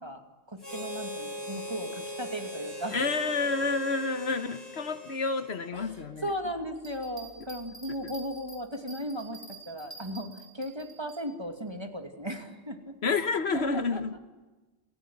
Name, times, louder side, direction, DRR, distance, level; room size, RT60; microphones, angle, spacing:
voice 1, 0.0-3.0 5.7-12.9 13.5-14.2, equal, 25° right, 2.6 m, -37 dB
Harmonica, 0.6-6.1, left 1 dB, 20° left, 5.0 m, -40 dB
voice 2, 2.9-6.2 13.0-14.2, left 4 dB, 75° left, 1.5 m, -29 dB
Bell, 6.7-11.2 11.7-11.8, right 3 dB, 40° left, 5.3 m, -47 dB
29.0 x 16.0 x 9.6 m
omnidirectional pair, 1.1 m